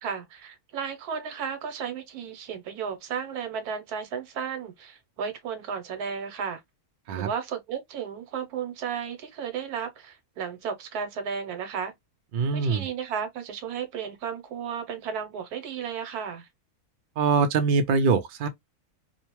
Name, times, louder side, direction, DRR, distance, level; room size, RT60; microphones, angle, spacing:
voice 1, 0.0-6.6 7.1-11.9 12.5-16.5, right 7 dB, 90° right, 1.3 m, -34 dB
voice 2, 12.3-12.9 17.2-18.5, right 5 dB, 70° right, 0.5 m, -23 dB
2.7 x 2.1 x 2.9 m
omnidirectional pair, 1.6 m